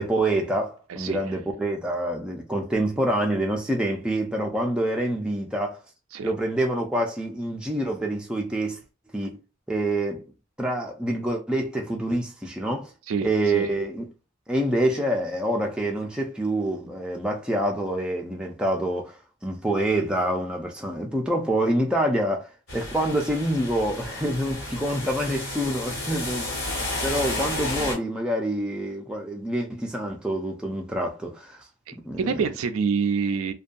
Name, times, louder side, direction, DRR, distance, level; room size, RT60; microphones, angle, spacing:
voice 1, 0.0-5.8 6.2-8.8 9.1-9.4 9.7-10.2 10.6-12.9 13.2-14.1 14.5-19.2 19.4-26.7 27.0-31.6 32.1-32.4, right 1 dB, 5° right, 0.3 m, -26 dB
voice 2, 13.1-13.7 31.9-33.5, right 5 dB, 85° right, 0.4 m, -27 dB
sound 1, 22.7-27.9, left 1 dB, 75° left, 1.4 m, -32 dB
2.6 x 2.2 x 2.5 m
head